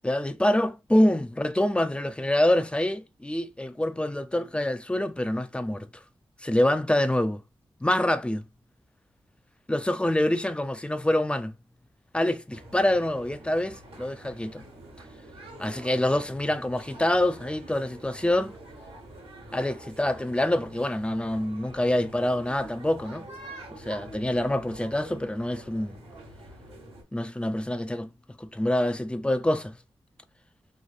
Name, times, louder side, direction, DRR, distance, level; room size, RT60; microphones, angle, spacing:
voice 1, 0.0-5.9 6.4-7.4 7.8-8.4 9.7-11.5 12.1-14.6 15.6-18.6 19.5-23.3 23.7-26.0 27.1-28.1 28.4-29.7, left 1 dB, 10° left, 0.4 m, -26 dB
sound 1, 12.5-27.0, right 1 dB, 80° right, 1.1 m, -46 dB
3.2 x 2.4 x 2.4 m
cardioid pair, 55°, 10 cm